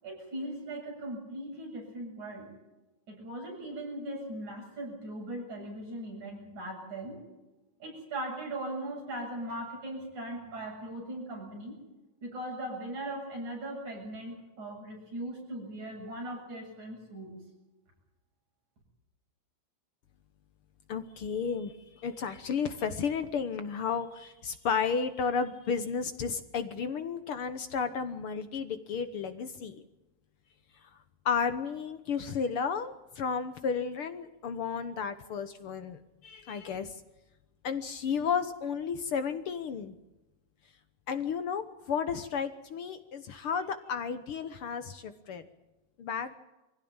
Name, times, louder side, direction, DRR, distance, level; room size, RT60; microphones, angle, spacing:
voice 1, 0.0-2.5 3.1-7.2 7.8-11.7 12.2-17.4, right 1 dB, 90° right, -1 dB, 9.2 m, -39 dB
voice 2, 20.9-29.8 31.2-36.9 37.6-39.9 41.1-45.4 46.0-46.4, left 6 dB, 60° left, 10 dB, 1.6 m, -33 dB
24.0 x 16.0 x 8.8 m, 1.0 s
omnidirectional pair, 3.3 m